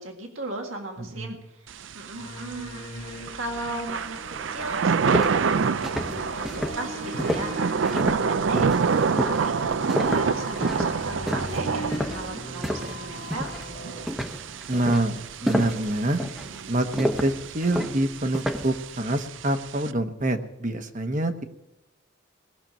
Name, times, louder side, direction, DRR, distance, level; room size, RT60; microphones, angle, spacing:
voice 1, 0.0-4.2 4.5-6.5 6.8-13.6, right 2 dB, 90° right, 2 dB, 1.9 m, -37 dB
voice 2, 1.0-1.4 14.7-16.2 16.7-21.4, right 1 dB, 40° right, 7 dB, 1.1 m, -26 dB
Thunder / Rain, 1.7-19.9, right 5 dB, 70° right, 0.5 m, -28 dB
sound 1, 2.1-14.1, left 1 dB, 55° left, 2.4 m, -39 dB
sound 2, 4.1-4.2 4.6-13.0 13.3-13.7 14.1-18.8, equal, ahead, 0.9 m, -30 dB
19.5 x 6.8 x 8.9 m, 0.92 s
head